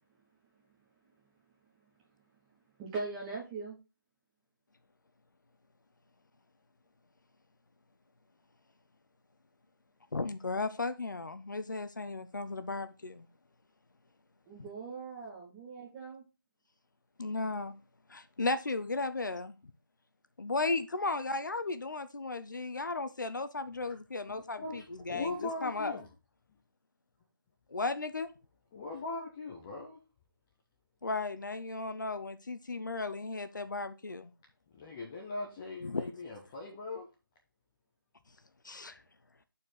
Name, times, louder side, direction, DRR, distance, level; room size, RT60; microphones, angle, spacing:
voice 1, 2.8-3.8 14.5-16.2, right 4 dB, 10° right, 1.3 m, -40 dB
voice 2, 10.1-13.3 17.2-17.7 18.1-19.5 20.4-25.3 25.6-26.0 27.7-28.3 31.0-34.3 35.8-36.1 38.6-39.0, left 3 dB, 65° left, 0.8 m, -35 dB
voice 3, 24.6-26.1 28.7-30.0 34.7-37.1, left 3 dB, 10° left, 0.5 m, -40 dB
6.1 x 4.5 x 6.5 m
figure-of-eight pair, 165°, 11 cm